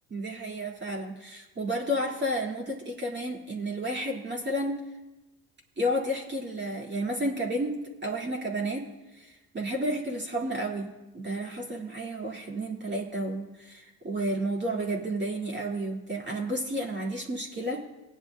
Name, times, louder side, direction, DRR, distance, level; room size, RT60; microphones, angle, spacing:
voice 1, 0.1-4.8 5.8-17.8, right 1 dB, 25° right, -1 dB, 2.1 m, -31 dB
20.0 x 10.0 x 2.2 m, 1.1 s
supercardioid pair, 75°, 43 cm